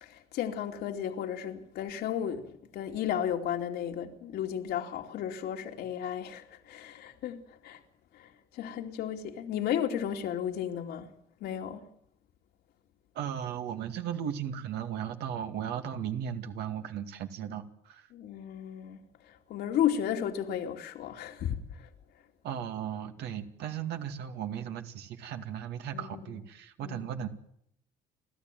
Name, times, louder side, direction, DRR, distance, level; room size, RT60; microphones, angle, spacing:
voice 1, 0.0-7.8 8.1-8.3 8.5-11.1 11.4-11.8 18.1-21.9 25.9-26.2 26.8-27.0, left 9 dB, 75° left, 2.7 m, -34 dB
voice 2, 13.1-18.1 22.4-27.3, right 9 dB, 75° right, 2.3 m, -36 dB
29.5 x 13.0 x 9.2 m
cardioid pair, 110°, 17 cm